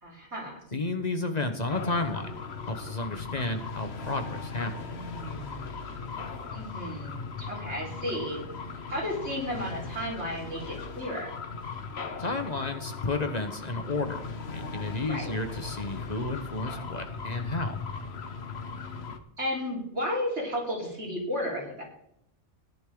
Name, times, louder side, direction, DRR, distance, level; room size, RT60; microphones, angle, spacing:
voice 1, 0.0-0.6 4.8-5.6 6.5-8.4 8.9-11.3 15.1-15.3 19.4-21.8, equal, 85° right, -4 dB, 4.9 m, -33 dB
voice 2, 0.7-2.3 2.7-4.7 12.2-17.8, left 2 dB, 40° left, 6 dB, 1.2 m, -32 dB
sound 1, 1.7-19.2, left 4 dB, 70° left, 1.3 m, -38 dB
14.5 x 11.0 x 3.9 m, 0.72 s
omnidirectional pair, 1.1 m